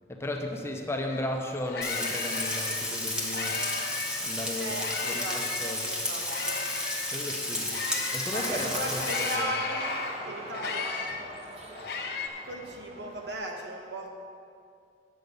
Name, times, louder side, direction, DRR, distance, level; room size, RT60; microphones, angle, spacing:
voice 1, 0.1-3.6 4.2-5.9 7.1-7.7 8.1-9.1 9.4-9.5, left 1 dB, 15° left, 2 dB, 0.7 m, -35 dB
sound 1, 1.1-1.2 1.5-4.3 4.7-8.5 8.9-12.3, left 5 dB, 65° left, 0.9 m, -35 dB
Frying (food), 1.8-9.3, left 1 dB, 5° right, 1.1 m, -32 dB
voice 2, 4.6-6.6 8.3-9.9 10.3-11.1 12.4-14.1, right 1 dB, 70° right, 0 dB, 1.4 m, -37 dB
sound 2, 8.3-13.3, right 1 dB, 35° right, 1.0 m, -40 dB
9.7 x 7.5 x 5.4 m, 2.4 s
head